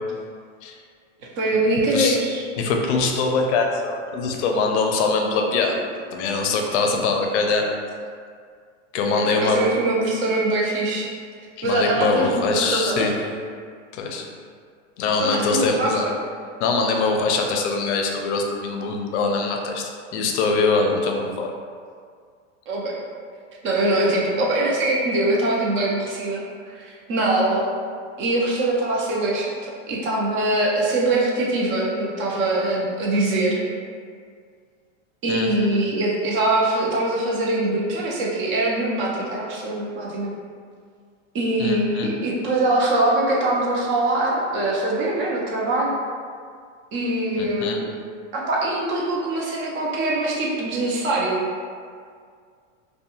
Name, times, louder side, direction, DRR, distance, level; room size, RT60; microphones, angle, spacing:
voice 1, 1.4-2.4 9.2-11.1 11.6-13.1 15.2-16.1 22.7-23.0 23.6-27.7 28.2-33.6 35.2-40.3 41.3-45.9 46.9-47.9 48.3-51.5, right 2 dB, 30° right, -3 dB, 0.5 m, -23 dB
voice 2, 2.6-5.8 6.1-7.7 8.9-9.7 11.6-13.1 13.9-14.2 15.0-16.0 16.6-19.8 20.1-21.5 35.3-35.5 41.6-42.1 47.4-47.8, left 4 dB, 65° left, 2 dB, 0.5 m, -23 dB
2.5 x 2.2 x 2.8 m, 2.1 s
supercardioid pair, 125°, 38 cm